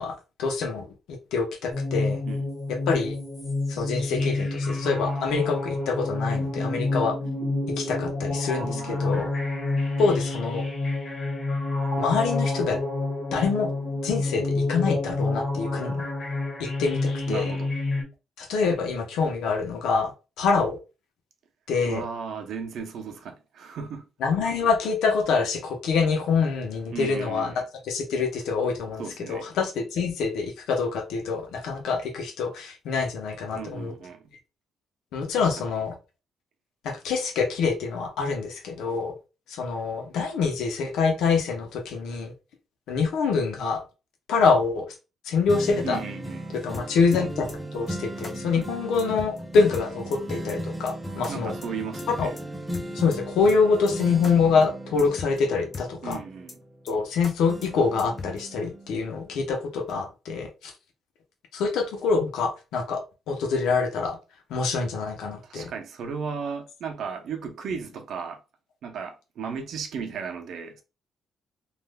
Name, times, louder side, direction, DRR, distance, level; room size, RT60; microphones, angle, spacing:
voice 1, 0.0-2.2 2.7-3.2 3.7-7.2 7.8-9.3 10.0-10.7 12.0-12.8 13.3-13.7 14.0-16.0 16.6-17.5 18.4-20.1 20.4-20.8 21.7-22.0 24.2-29.0 29.3-33.9 35.1-35.9 36.8-39.1 39.5-42.3 42.9-43.8 44.3-44.9 45.2-46.0 46.5-51.5 52.2-52.3 52.9-56.2 56.8-60.7 61.5-64.2 64.5-65.7, left 5 dB, 85° left, 0.8 m, -25 dB
sound 1, 1.7-18.0, left 2 dB, 55° left, 1.6 m, -28 dB
voice 2, 8.6-9.3 17.3-17.7 21.9-24.1 26.9-27.6 29.0-29.5 33.5-34.3 35.3-35.5 45.8-46.5 48.5-48.7 51.3-52.3 56.0-56.6 65.4-68.4 68.8-70.8, right 6 dB, 70° right, 0.6 m, -35 dB
sound 2, 45.5-57.1 57.5-59.4 59.9-60.0, right 1 dB, 5° right, 0.6 m, -37 dB
sound 3, 46.7-47.2 47.5-47.6 47.9-48.0 48.2-48.3 48.6-48.7 49.0-49.4 49.7-50.2 50.5-50.6 50.9-51.0 51.2-51.3 51.6-51.7 52.0-52.4 52.7-53.2 53.5-53.6 53.9-54.0 54.2-54.3 54.6-54.7 55.0-55.4 55.7-56.2 56.5-56.6 56.9-57.0 57.2-57.3 57.6-57.7 58.0-58.4, left 3 dB, 35° left, 0.7 m, -38 dB
3.2 x 2.4 x 2.2 m
cardioid pair, 90°, 0 cm